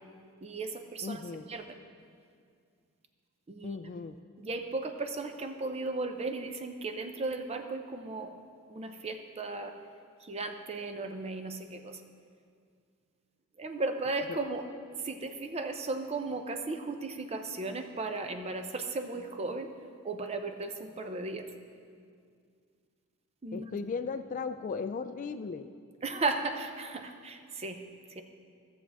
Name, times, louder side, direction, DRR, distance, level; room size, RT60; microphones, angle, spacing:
voice 1, 0.4-1.2 1.5-1.8 3.5-3.8 4.4-8.3 8.7-9.8 10.2-12.0 13.6-14.7 15.0-19.7 20.0-21.5 23.4-23.7 26.0-27.8 28.1-28.2, right 3 dB, 30° right, 6 dB, 0.6 m, -35 dB
voice 2, 1.0-1.5 3.6-4.2 14.3-14.4 23.5-25.7, left 5 dB, 35° left, 9 dB, 0.3 m, -36 dB
15.0 x 7.1 x 3.5 m, 2.2 s
head